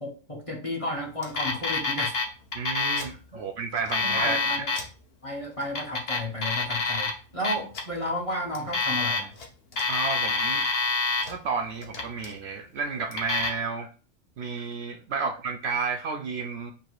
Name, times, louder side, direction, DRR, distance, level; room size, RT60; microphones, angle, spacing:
voice 1, 0.0-2.1 3.3-3.4 4.0-4.7 5.2-9.3 15.1-15.3, left 1 dB, 30° left, 0 dB, 0.9 m, -33 dB
Alarm, 1.2-2.2 2.5-3.1 3.7-4.8 5.6-7.1 7.4-7.8 8.5-9.4 9.7-11.3 11.8-12.3 13.1-13.5, left 4 dB, 50° left, 1.1 m, -27 dB
voice 2, 2.5-4.6 9.9-10.7 11.3-13.9 14.4-16.7, right 5 dB, 65° right, 5 dB, 0.7 m, -31 dB
3.9 x 2.8 x 4.5 m, 0.36 s
omnidirectional pair, 1.4 m